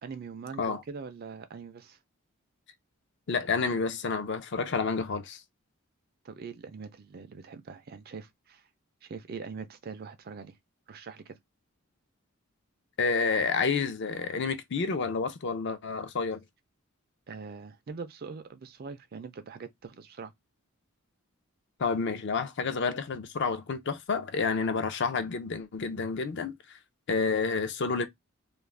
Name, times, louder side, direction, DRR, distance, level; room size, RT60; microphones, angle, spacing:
voice 1, 0.0-2.0 6.2-8.7 9.0-10.6 10.9-11.4 17.3-20.3, right 5 dB, 45° right, 0.4 m, -42 dB
voice 2, 3.3-5.4 13.0-16.4 21.8-26.8 27.1-28.0, left 4 dB, 55° left, 0.5 m, -29 dB
2.4 x 2.0 x 3.2 m
head